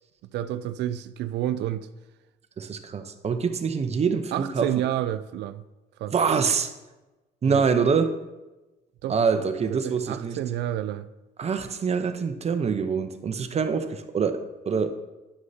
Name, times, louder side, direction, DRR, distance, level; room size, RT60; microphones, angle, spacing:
voice 1, 0.3-1.9 4.3-5.6 6.0-6.1 7.4-7.6 9.0-9.4 9.7-11.1, right 12 dB, 75° right, 0.4 m, -30 dB
voice 2, 2.6-4.7 6.1-6.7 7.4-8.1 9.1-10.4 11.4-14.9, right 5 dB, 35° right, 0.8 m, -25 dB
11.0 x 6.4 x 2.8 m
cardioid pair, 90°, 18 cm